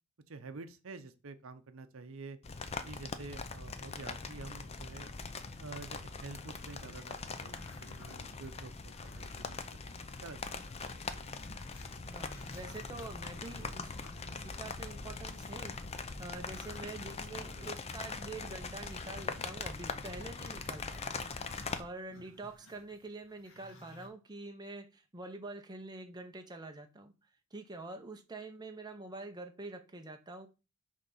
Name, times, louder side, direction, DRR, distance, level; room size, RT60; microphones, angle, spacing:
voice 1, 0.3-2.4 2.8-5.1 5.6-8.7 9.0-10.6, right 3 dB, 70° right, 0.7 m, -48 dB
sound 1, 2.4-21.8, left 4 dB, 30° left, 0.5 m, -42 dB
Growling, 6.2-9.7 10.1-10.2 10.5-15.6 16.0-24.1, left 1 dB, 65° left, 1.5 m, -58 dB
voice 2, 12.0-13.9 14.3-15.8 16.2-21.2 21.8-27.1 27.5-30.5, right 2 dB, 20° right, 0.7 m, -46 dB
6.4 x 3.3 x 5.5 m
head